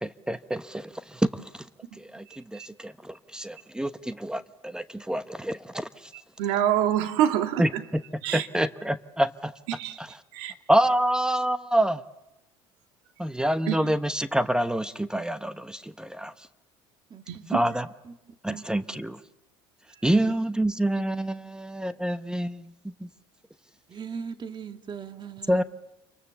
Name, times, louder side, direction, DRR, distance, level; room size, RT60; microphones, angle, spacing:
voice 1, 0.0-1.4 2.0-2.3 2.5-5.9 7.6-8.0 8.3-9.5 10.0-10.1 10.7-12.0 13.2-16.3 17.5-17.9 18.4-18.8 20.0-22.7 23.0-23.1 25.5-25.6, right 1 dB, 5° right, 12 dB, 1.0 m, -27 dB
voice 2, 6.1-7.8 8.2-8.5 9.8-10.5 13.7-13.9 17.3-17.6, right 11 dB, 85° right, 7 dB, 2.0 m, -27 dB
voice 3, 23.9-25.6, right 6 dB, 35° right, 7 dB, 2.0 m, -38 dB
29.0 x 23.5 x 7.1 m, 0.94 s
supercardioid pair, 90°, 13 cm